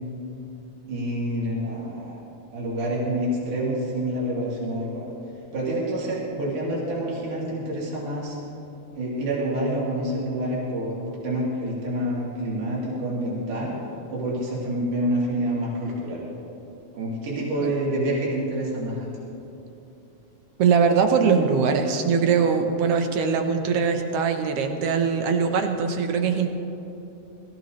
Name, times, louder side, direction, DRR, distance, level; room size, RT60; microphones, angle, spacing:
voice 1, 0.9-2.2 2.5-5.1 5.5-8.4 9.0-13.8 14.1-16.3 16.9-19.2, right 1 dB, 85° right, -6 dB, 4.1 m, -27 dB
voice 2, 20.6-26.5, right 6 dB, 65° right, 6 dB, 1.7 m, -22 dB
21.0 x 15.5 x 3.1 m, 2.9 s
omnidirectional pair, 3.5 m